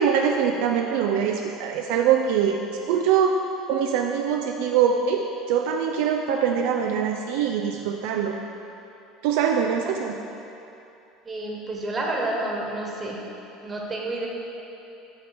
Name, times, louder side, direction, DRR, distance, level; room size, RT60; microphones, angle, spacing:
voice 1, 0.0-2.6 2.8-3.4 3.7-8.4 9.2-10.2, right 7 dB, 70° right, 2 dB, 0.3 m, -23 dB
voice 2, 11.2-13.2 13.6-14.3, right 2 dB, 30° right, -1 dB, 1.3 m, -29 dB
6.1 x 5.1 x 4.8 m, 2.8 s
hypercardioid pair, 80°, 0 cm